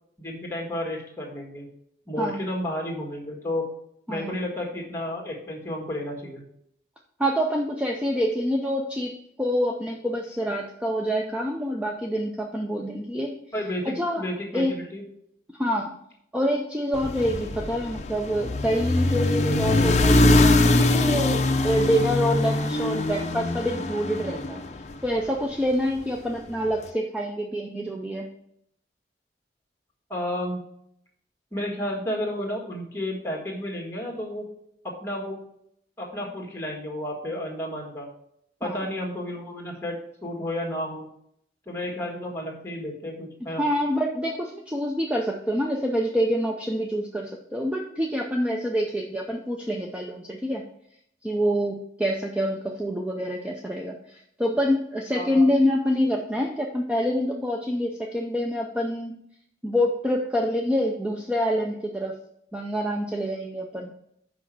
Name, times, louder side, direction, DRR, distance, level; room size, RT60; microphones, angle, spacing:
voice 1, 0.2-1.7 2.1-3.7 4.1-6.4 13.5-15.0 30.1-30.6 31.5-34.5 34.8-35.4 36.0-38.1 38.6-39.9 40.2-41.1 41.6-43.6 55.1-55.5, left 1 dB, 15° left, 0 dB, 1.7 m, -32 dB
voice 2, 7.2-9.1 9.4-13.4 13.9-14.2 14.5-14.7 15.5-15.9 16.3-24.6 25.0-28.3 38.6-38.9 43.6-50.6 51.2-59.2 59.6-62.1 62.5-63.9, equal, 5° right, 0 dB, 0.5 m, -26 dB
sound 1, 16.9-25.3, left 2 dB, 40° left, 0.6 m, -22 dB
6.1 x 5.0 x 6.1 m, 0.72 s
head